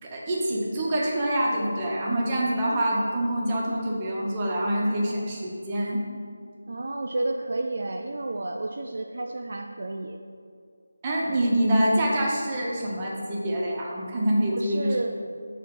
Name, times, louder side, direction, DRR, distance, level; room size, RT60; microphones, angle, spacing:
voice 1, 0.0-6.0 11.0-15.0, right 1 dB, 20° right, -4 dB, 1.1 m, -25 dB
voice 2, 6.7-10.2 14.5-15.2, right 2 dB, 55° right, 3 dB, 0.4 m, -31 dB
6.4 x 3.3 x 5.9 m, 2.2 s
figure-of-eight pair, 160°, 0 cm